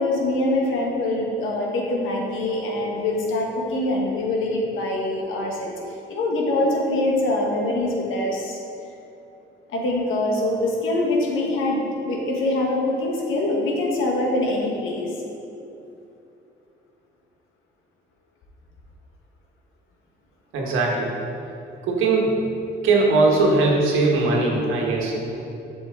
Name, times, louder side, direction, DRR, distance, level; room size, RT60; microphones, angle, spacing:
voice 1, 0.0-5.7 6.1-8.6 9.7-15.1, left 2 dB, 85° left, -1 dB, 1.5 m, -24 dB
voice 2, 20.5-21.1 21.8-22.4 22.8-25.4, right 3 dB, 90° right, -2 dB, 1.4 m, -20 dB
7.9 x 6.1 x 3.8 m, 2.8 s
cardioid pair, 90°, 20 cm